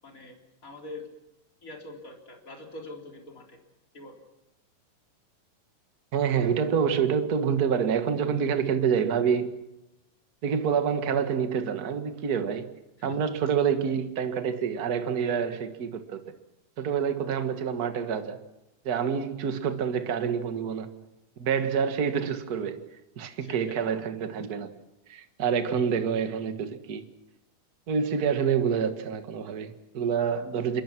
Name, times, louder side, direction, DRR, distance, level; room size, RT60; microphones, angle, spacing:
voice 1, 0.0-0.4 0.6-1.1 1.6-3.6 3.9-4.2 13.0-13.5 23.4-23.8, left 2 dB, 25° left, 4.0 m, -44 dB
voice 2, 6.1-9.5 10.4-12.7 13.0-16.2 16.8-18.4 18.8-20.9 21.4-22.8 23.2-24.7 25.1-27.0 27.9-30.8, right 7 dB, 40° right, 1.4 m, -27 dB
27.0 x 23.0 x 6.1 m
omnidirectional pair, 3.9 m